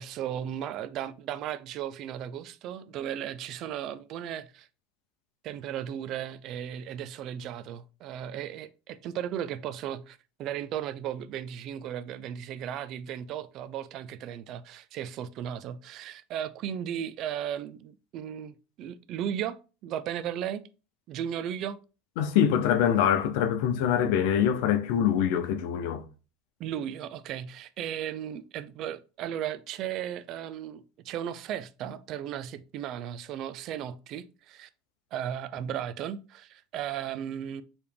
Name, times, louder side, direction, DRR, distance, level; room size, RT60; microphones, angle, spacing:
voice 1, 0.0-4.7 5.4-20.6 21.1-21.8 26.6-34.7 35.1-37.6, right 10 dB, 50° right, 0.4 m, -36 dB
voice 2, 22.2-26.0, left 9 dB, 75° left, 0.7 m, -24 dB
4.7 x 3.3 x 3.4 m
supercardioid pair, 115°, 0 cm